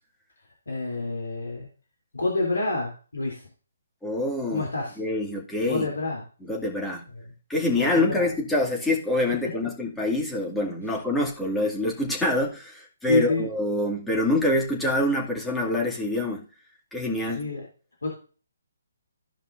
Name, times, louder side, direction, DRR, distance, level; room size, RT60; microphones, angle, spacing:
voice 1, 0.7-1.7 2.1-3.4 4.5-5.0 5.7-6.2 7.1-7.2 7.7-8.3 13.1-13.4 17.3-17.6 18.0-18.1, left 2 dB, 80° left, -1 dB, 3.2 m, -27 dB
voice 2, 4.0-4.6 5.0-5.9 6.5-7.0 7.5-16.5 16.9-17.5, left 1 dB, 5° left, -2 dB, 2.3 m, -26 dB
15.5 x 5.4 x 2.6 m, 0.37 s
figure-of-eight pair, 140°, 0 cm